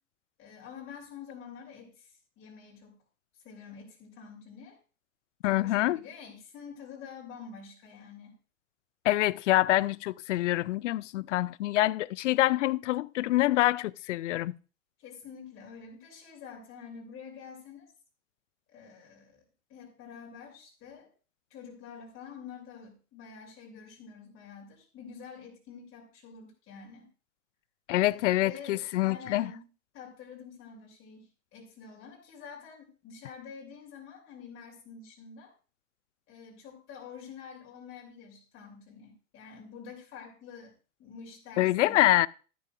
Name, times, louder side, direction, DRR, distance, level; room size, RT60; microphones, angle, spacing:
voice 1, 0.4-2.9 3.3-4.8 5.4-8.3 15.0-17.9 18.7-19.4 19.7-21.1 21.5-27.1 28.1-29.7 29.9-35.5 36.3-40.7 41.0-42.0, left 6 dB, 30° left, 2.9 m, -47 dB
voice 2, 5.4-6.0 9.1-14.6 27.9-29.5 41.6-42.3, left 16 dB, 65° left, 0.5 m, -26 dB
13.0 x 10.0 x 2.4 m
figure-of-eight pair, 100°, 40 cm